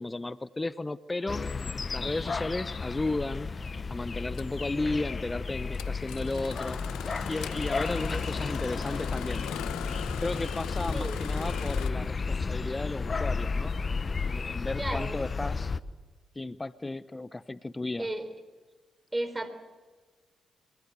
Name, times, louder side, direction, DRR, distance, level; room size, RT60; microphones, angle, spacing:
voice 1, 0.0-1.4 1.9-3.5 3.9-6.8 7.3-9.4 10.2-13.7 14.2-15.7 16.3-18.1, left 2 dB, 25° left, 15 dB, 0.9 m, -34 dB
sound 1, 1.3-15.8, left 4 dB, 45° left, 1.2 m, -33 dB
Engine starting, 4.3-4.6 5.7-11.9, left 11 dB, 80° left, 1.0 m, -41 dB
voice 2, 8.1-8.8 10.9-11.7 14.8-15.2 18.0-18.3 19.1-19.5, right 1 dB, 20° right, 10 dB, 4.0 m, -36 dB
26.0 x 21.0 x 8.1 m, 1.3 s
hypercardioid pair, 45°, 0 cm